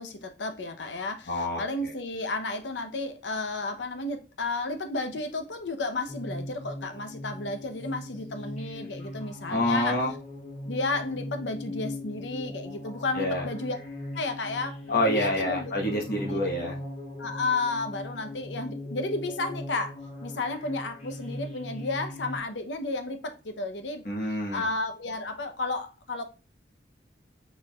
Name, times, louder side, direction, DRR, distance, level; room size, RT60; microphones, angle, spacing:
voice 1, 0.0-10.0 10.6-13.8 14.1-15.7 16.2-16.4 17.2-24.1 24.5-26.2, left 2 dB, 80° left, 0.8 m, -32 dB
voice 2, 1.3-1.9 9.5-10.1 13.1-13.5 14.9-16.8 24.0-24.7, left 1 dB, 55° left, 1.2 m, -27 dB
sound 1, 6.1-22.4, left 1 dB, 40° left, 2.0 m, -39 dB
4.6 x 4.5 x 2.3 m
head